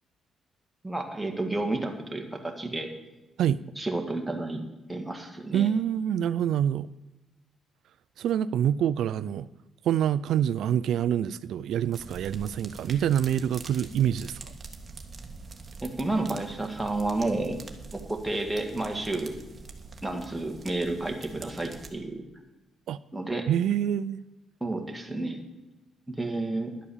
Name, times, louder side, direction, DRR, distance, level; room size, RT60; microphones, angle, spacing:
voice 1, 0.8-2.9 3.8-4.6 4.9-5.7 15.8-17.6 17.9-19.3 20.0-22.2 23.1-23.5 24.6-25.4 26.1-26.7, right 2 dB, 5° right, 2.0 m, -31 dB
voice 2, 5.5-6.9 8.2-9.5 9.8-14.4 22.9-23.0 23.5-24.2, right 10 dB, 75° right, 0.3 m, -26 dB
sound 1, 11.9-21.9, right 3 dB, 30° right, 1.5 m, -44 dB
11.5 x 8.5 x 7.1 m
cardioid pair, 110°, 0 cm